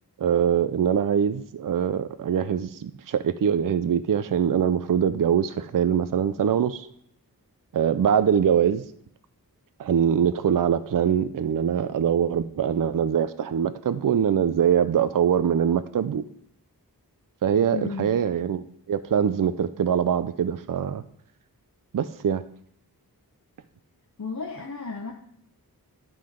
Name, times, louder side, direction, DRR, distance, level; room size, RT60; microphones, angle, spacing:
voice 1, 0.2-6.9 7.7-8.8 9.8-16.2 17.4-21.0 21.9-22.4, right 8 dB, 60° right, 12 dB, 0.5 m, -23 dB
voice 2, 17.7-18.1 24.2-25.1, left 4 dB, 50° left, 1 dB, 0.8 m, -33 dB
11.5 x 3.9 x 5.0 m, 0.68 s
wide cardioid pair, 60°, 38 cm